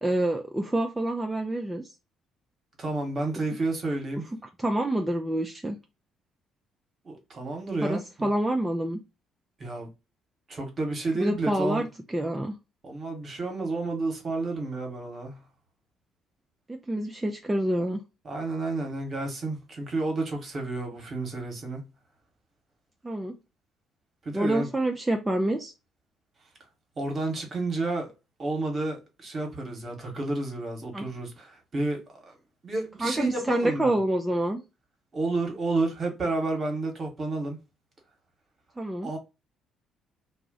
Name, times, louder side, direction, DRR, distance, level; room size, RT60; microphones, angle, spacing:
voice 1, 0.0-1.9 4.6-5.8 7.8-9.0 11.1-12.6 16.7-18.0 23.0-23.4 24.3-25.7 30.9-31.1 33.0-34.6 38.8-39.1, right 1 dB, 15° right, 0.5 m, -27 dB
voice 2, 2.8-4.3 7.0-8.3 9.6-9.9 10.5-11.8 12.8-15.4 18.2-21.8 24.2-24.7 27.0-28.1 28.4-32.4 32.6-33.9 35.1-37.6 39.0-39.2, right 2 dB, 45° right, 1.2 m, -31 dB
2.4 x 2.0 x 3.7 m
hypercardioid pair, 50°, 0 cm